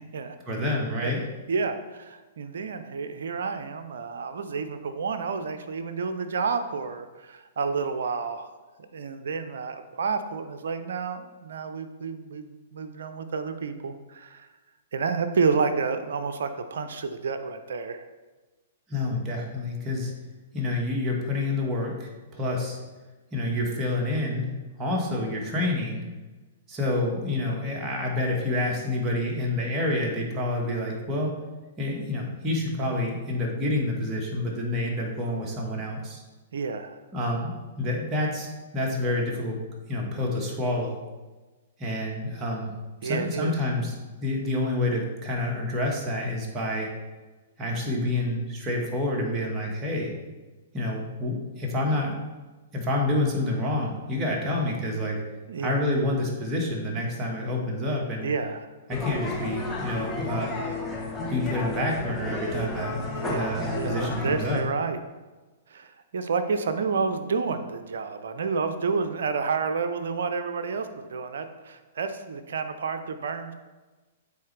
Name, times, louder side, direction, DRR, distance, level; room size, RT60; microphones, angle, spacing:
voice 1, 0.5-1.2 18.9-20.1 20.5-22.8 23.3-24.5 24.8-26.0 26.7-31.3 31.8-36.2 37.1-39.6 39.9-41.0 41.8-42.7 43.0-46.9 47.6-50.1 50.7-52.1 52.7-55.2 55.6-58.3 58.9-60.5 61.3-64.6, left 1 dB, 20° right, -2 dB, 1.5 m, -28 dB
voice 2, 1.5-8.5 8.9-14.5 14.9-18.0 36.5-37.0 43.0-43.5 55.5-55.8 58.2-58.7 63.1-65.0 65.7-73.5, right 5 dB, 70° right, 8 dB, 0.5 m, -30 dB
sound 1, 58.9-64.6, left 2 dB, 15° left, 1.1 m, -32 dB
8.5 x 3.9 x 3.3 m, 1.2 s
hypercardioid pair, 120°, 0 cm